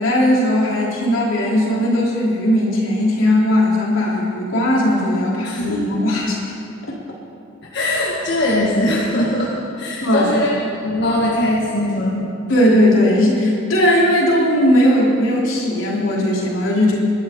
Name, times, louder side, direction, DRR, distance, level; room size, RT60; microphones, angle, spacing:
voice 1, 0.0-6.4 10.0-10.3 12.5-17.0, left 1 dB, 90° left, -4 dB, 3.5 m, -17 dB
voice 2, 5.4-5.9 7.7-9.5 9.8-12.3, left 1 dB, 60° left, -5 dB, 1.8 m, -20 dB
22.0 x 12.5 x 3.8 m, 2.7 s
head